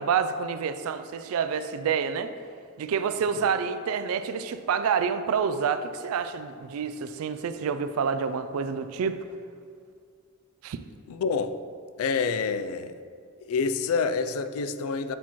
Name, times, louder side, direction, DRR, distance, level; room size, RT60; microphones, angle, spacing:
voice 1, 0.0-2.3 2.8-9.2 10.6-10.8, right 6 dB, 80° right, 10 dB, 0.3 m, -28 dB
voice 2, 11.1-11.5 12.0-12.9 13.5-15.1, left 5 dB, 80° left, 11 dB, 0.3 m, -27 dB
8.0 x 4.3 x 3.0 m, 2.2 s
head